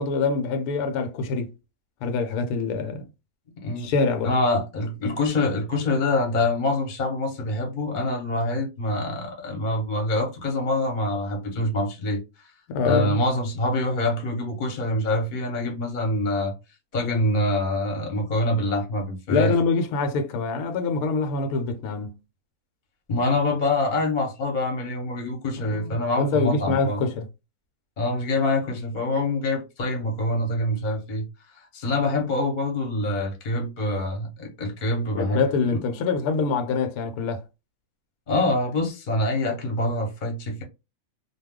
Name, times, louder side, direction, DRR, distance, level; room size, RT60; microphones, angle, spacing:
voice 1, 0.0-1.5 2.0-3.0 3.8-4.3 12.7-13.2 19.3-22.2 25.7-27.3 35.1-37.4, left 4 dB, 75° left, 1.0 m, -25 dB
voice 2, 4.2-12.2 12.9-16.5 16.9-19.5 23.1-27.0 28.0-31.3 31.7-35.4 35.7-35.8 38.3-40.6, left 2 dB, 40° left, 0.9 m, -25 dB
2.3 x 2.2 x 3.5 m
omnidirectional pair, 1.6 m